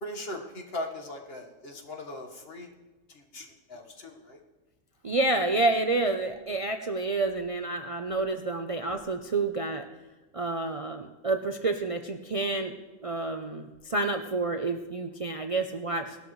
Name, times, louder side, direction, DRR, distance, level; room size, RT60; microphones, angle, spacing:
voice 1, 0.0-2.7 3.1-4.4, left 1 dB, 50° left, 2 dB, 1.7 m, -39 dB
voice 2, 5.0-9.9 10.3-12.7 13.0-16.2, right 3 dB, 45° right, 5 dB, 0.4 m, -29 dB
19.0 x 12.0 x 3.2 m, 1.2 s
omnidirectional pair, 1.4 m